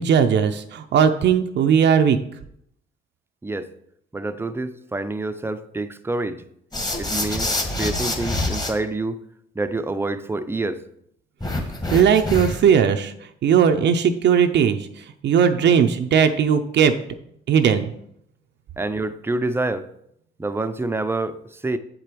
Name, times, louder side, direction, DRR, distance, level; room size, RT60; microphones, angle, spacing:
voice 1, 0.0-2.2 11.9-13.1 13.4-14.9 15.2-16.9 17.5-17.9, right 7 dB, 65° right, 7 dB, 0.6 m, -18 dB
voice 2, 4.1-6.4 7.0-9.2 9.6-10.8 18.8-19.9 20.4-21.8, right 2 dB, 10° right, 10 dB, 0.5 m, -27 dB
sound 1, 6.7-8.7 11.4-12.7, left 2 dB, 20° left, 1.5 m, -26 dB
7.7 x 5.0 x 4.5 m, 0.72 s
cardioid pair, 90°, 20 cm